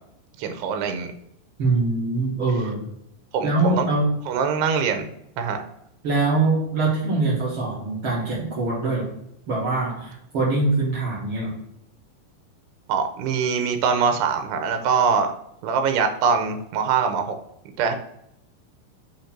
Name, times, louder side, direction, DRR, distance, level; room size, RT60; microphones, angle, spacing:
voice 1, 0.4-1.1 3.3-3.8 4.3-5.0 5.4-5.6 12.9-15.3 15.6-17.4 17.8-18.0, right 6 dB, 85° right, 6 dB, 3.0 m, -23 dB
voice 2, 1.6-2.9 3.4-4.1 6.0-9.1 9.5-11.6, right 3 dB, 60° right, -6 dB, 1.4 m, -23 dB
6.9 x 3.2 x 5.8 m, 0.78 s
omnidirectional pair, 4.7 m